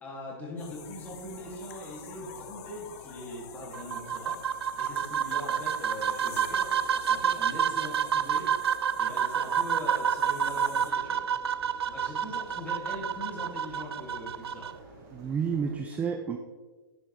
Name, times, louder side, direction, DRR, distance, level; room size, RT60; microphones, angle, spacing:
voice 1, 0.0-4.4 4.8-8.5 9.0-11.2 11.9-14.7, left 1 dB, 15° left, -2 dB, 2.3 m, -41 dB
sound 1, 0.6-10.9, left 7 dB, 40° left, 1.0 m, -47 dB
sound 2, 3.7-14.7, right 8 dB, 85° right, 0.4 m, -29 dB
sound 3, 10.5-15.7, right 2 dB, 40° right, 2.0 m, -51 dB
voice 2, 15.1-16.4, right 6 dB, 10° right, 6 dB, 0.4 m, -30 dB
10.5 x 6.2 x 3.2 m, 1.4 s
hypercardioid pair, 140°, 13 cm